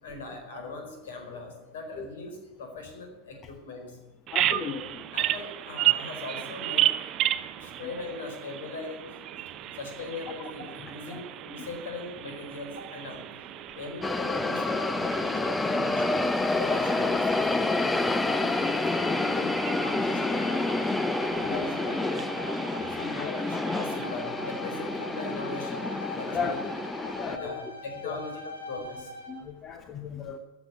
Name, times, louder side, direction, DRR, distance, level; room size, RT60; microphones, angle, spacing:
voice 1, 0.0-4.0 5.1-6.9 7.6-9.0 9.7-13.2 13.7-15.9 16.6-17.5 17.9-20.8 21.3-22.6 22.9-26.6 27.2-28.3 28.7-29.1, left 3 dB, 60° left, 4 dB, 4.5 m, -40 dB
voice 2, 4.3-5.0 10.8-11.2 11.6-11.7 16.0-16.1 21.2-21.7 22.7-23.4 26.2-26.5 27.0-27.6 28.0-28.2 29.3-30.4, left 6 dB, 25° left, 7 dB, 1.1 m, -37 dB
Bird vocalization bird call bird song, 4.3-24.1, right 13 dB, 35° right, 0.7 m, -34 dB
sound 1, 14.0-27.4, left 2 dB, 10° left, 0.7 m, -28 dB
Bowed string instrument, 20.0-29.4, left 1 dB, 90° left, 2.3 m, -42 dB
14.5 x 8.4 x 8.5 m, 1.2 s
figure-of-eight pair, 90°, 0 cm